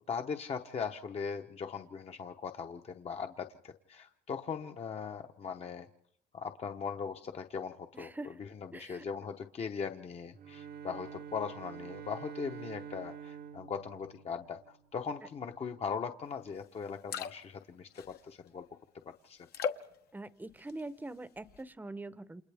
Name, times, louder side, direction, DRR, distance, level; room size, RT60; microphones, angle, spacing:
voice 1, 0.1-5.9 6.3-8.1 8.4-18.6 19.0-19.4, left 6 dB, 40° left, 5 dB, 0.9 m, -39 dB
voice 2, 7.9-8.4 8.7-9.1 20.1-22.4, right 2 dB, 10° right, 15 dB, 0.8 m, -43 dB
Bowed string instrument, 10.3-14.9, right 8 dB, 65° right, 1.0 m, -47 dB
sound 1, 16.5-16.6 16.9-17.6 17.9-18.5 19.5-20.0 20.5-21.0 21.4-21.6, left 7 dB, 70° left, 1.2 m, -38 dB
29.0 x 27.5 x 3.5 m, 0.72 s
cardioid pair, 110°, 17 cm